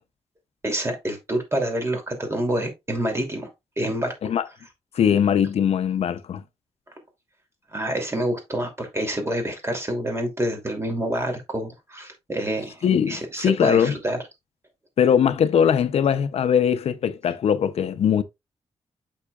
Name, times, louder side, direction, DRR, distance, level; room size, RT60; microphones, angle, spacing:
voice 1, 0.6-3.5 3.8-4.1 7.7-14.2, right 1 dB, 25° right, 2.8 m, -27 dB
voice 2, 4.9-6.4 12.8-14.0 15.0-18.2, left 8 dB, 75° left, 0.6 m, -21 dB
8.3 x 6.2 x 2.4 m
cardioid pair, 85°, 11 cm